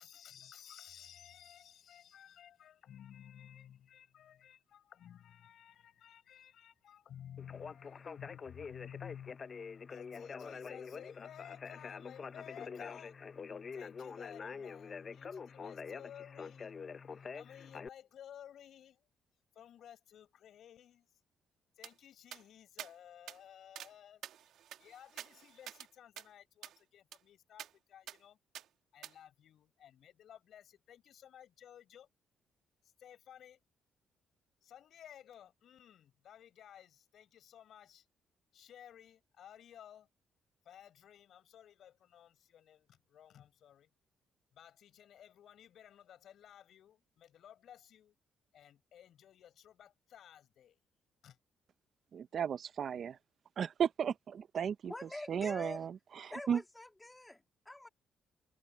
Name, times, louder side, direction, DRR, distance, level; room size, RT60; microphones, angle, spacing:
voice 1, 0.0-9.4 9.9-13.1 13.7-16.7 17.3-19.0 19.5-21.1 21.7-24.2 24.8-28.4 28.9-32.1 33.0-33.6 34.6-38.0 38.5-40.1 40.6-43.9 44.5-48.1 48.5-50.8 51.2-51.4, left 10 dB, 70° left, 5.0 m, -55 dB
Conversation, 7.4-17.9, left 5 dB, 40° left, 0.4 m, -46 dB
sound 1, 21.8-21.9 22.3-22.4 22.8-22.9 23.3-23.4 23.8-23.9 24.2-25.9 26.2-26.3 26.6-26.8 27.1-27.2 27.6-27.7 28.1-28.2 28.5-28.7 29.0-29.1, right 11 dB, 80° right, 1.3 m, -48 dB
voice 2, 52.1-53.2 53.6-54.9 55.3-56.6, right 8 dB, 55° right, 0.6 m, -35 dB
voice 3, 54.9-55.8 56.3-57.9, left 1 dB, 10° left, 2.4 m, -46 dB
cardioid pair, 90°, 0 cm